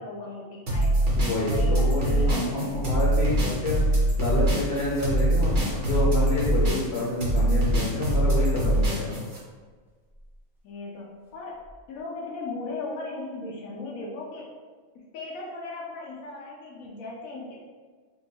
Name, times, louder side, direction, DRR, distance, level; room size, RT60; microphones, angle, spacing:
voice 1, 0.0-1.1 1.4-2.8 10.6-14.5 14.9-17.6, left 3 dB, 85° left, -3 dB, 1.0 m, -37 dB
sound 1, 0.7-9.4, right 1 dB, 40° right, 0.9 m, -23 dB
voice 2, 1.2-9.2, left 2 dB, 60° left, -5 dB, 0.8 m, -28 dB
sound 2, 10.1-10.4 11.6-12.0, equal, 5° right, 0.4 m, -40 dB
4.4 x 2.2 x 2.7 m, 1.5 s
omnidirectional pair, 1.4 m